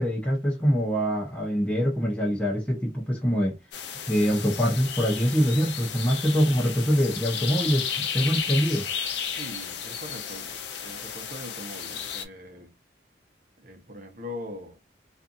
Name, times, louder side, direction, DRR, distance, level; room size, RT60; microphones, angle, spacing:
voice 1, 0.0-3.6 4.1-8.9, equal, 5° left, 0.7 m, -24 dB
sound 1, 3.7-12.2, left 7 dB, 70° left, 0.5 m, -33 dB
voice 2, 9.3-12.7 13.6-14.8, left 1 dB, 50° right, 0.8 m, -41 dB
2.6 x 2.4 x 2.5 m
head